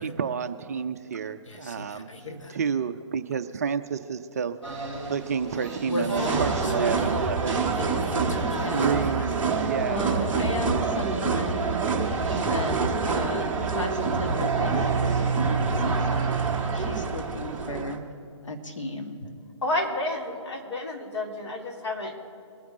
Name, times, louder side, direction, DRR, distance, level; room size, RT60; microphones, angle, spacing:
voice 1, 0.0-2.1 2.5-4.6 5.1-7.8 8.7-10.2, right 6 dB, 30° right, 9 dB, 0.4 m, -30 dB
voice 2, 1.5-2.6 5.5-7.1 7.7-11.8 12.4-16.3 16.7-18.0 18.4-19.2, left 1 dB, 80° left, 3 dB, 1.9 m, -35 dB
sound 1, 4.6-17.0, right 4 dB, 5° left, 2.5 m, -33 dB
sound 2, 6.1-18.0, right 4 dB, 10° right, 0.9 m, -27 dB
voice 3, 19.6-22.1, left 2 dB, 60° left, -1 dB, 3.3 m, -30 dB
22.5 x 9.4 x 3.8 m, 2.4 s
figure-of-eight pair, 145°, 16 cm